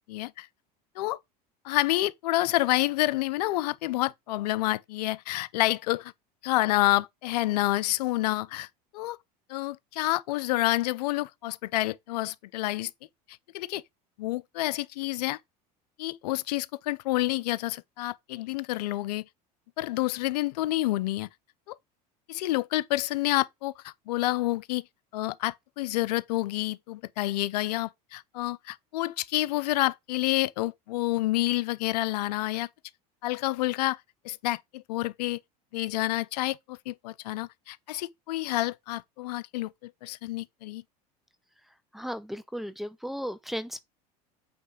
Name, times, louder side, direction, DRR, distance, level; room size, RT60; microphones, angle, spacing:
voice 1, 0.1-0.5 1.0-1.2 1.6-6.1 6.4-8.7 8.9-9.2 9.5-12.9 13.5-13.8 14.2-15.4 16.0-19.2 19.8-21.3 21.7-21.8 22.3-24.8 25.1-32.7 33.2-34.0 34.2-35.4 35.7-40.8, left 17 dB, 80° left, 0.6 m, -28 dB
voice 2, 41.9-43.8, equal, ahead, 0.8 m, -35 dB
8.7 x 3.2 x 5.0 m
hypercardioid pair, 90°, 20 cm